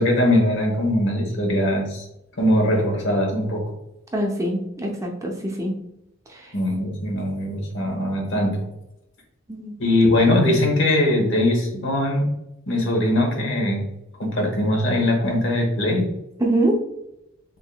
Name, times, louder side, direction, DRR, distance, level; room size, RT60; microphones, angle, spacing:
voice 1, 0.0-2.0 2.4-3.6 6.5-8.6 9.8-12.3 12.7-13.8 14.2-16.1, left 1 dB, 65° left, 2 dB, 1.1 m, -21 dB
voice 2, 4.1-5.8 6.3-6.5 9.5-9.7 16.4-16.8, right 1 dB, 15° right, 0 dB, 0.6 m, -24 dB
3.7 x 3.7 x 2.3 m, 0.87 s
head